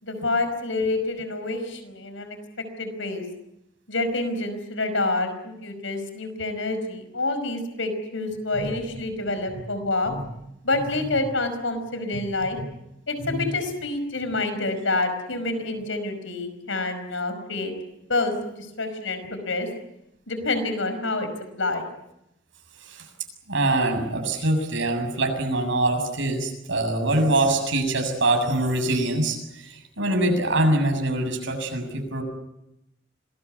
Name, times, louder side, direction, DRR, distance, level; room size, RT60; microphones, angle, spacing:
voice 1, 0.0-2.4 2.8-3.2 3.9-10.1 10.6-12.6 13.1-17.7 18.1-19.7 20.3-21.3 21.6-21.9, left 2 dB, 75° left, 9 dB, 5.2 m, -27 dB
voice 2, 22.8-23.1 23.5-32.2, right 2 dB, 70° right, 4 dB, 7.3 m, -24 dB
26.5 x 20.5 x 8.5 m, 0.85 s
head